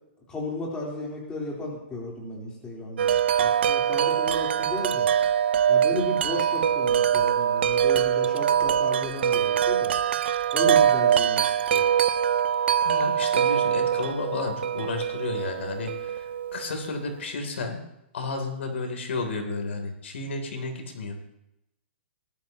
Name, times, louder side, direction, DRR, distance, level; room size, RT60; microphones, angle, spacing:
voice 1, 0.3-5.1 5.7-9.9 10.5-11.8, left 2 dB, 15° left, -3 dB, 3.7 m, -34 dB
Wind chime, 3.0-16.9, right 9 dB, 65° right, 0.6 m, -23 dB
voice 2, 12.8-17.8 18.1-21.2, left 3 dB, 80° left, 4 dB, 3.3 m, -32 dB
19.5 x 12.0 x 3.0 m, 0.86 s
hypercardioid pair, 160°, 6 cm